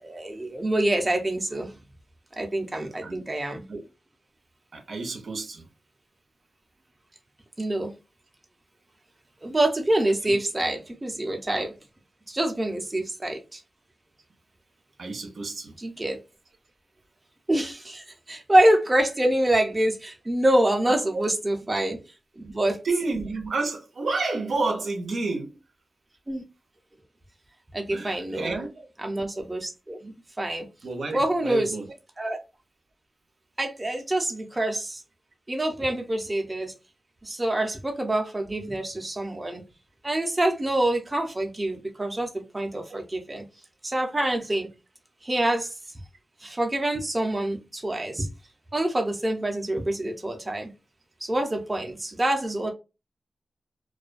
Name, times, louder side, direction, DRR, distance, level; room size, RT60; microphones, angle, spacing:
voice 1, 0.0-1.8 2.4-3.7 7.6-7.9 9.4-11.7 12.3-13.6 15.8-16.2 17.5-22.0 22.4-22.8 26.3-26.4 27.7-28.5 29.0-30.7 31.1-31.7 32.2-32.4 33.6-35.0 35.5-36.7 37.2-39.6 40.0-43.4 43.8-44.7 45.2-45.7 46.4-48.3 48.7-50.7 51.2-52.7, right 1 dB, 25° right, 0.6 m, -26 dB
voice 2, 4.7-5.7 15.0-15.7 20.9-21.2 22.8-25.5 27.9-28.9 30.8-31.9, right 3 dB, 75° right, 0.6 m, -30 dB
2.3 x 2.2 x 2.4 m
wide cardioid pair, 80°, 0 cm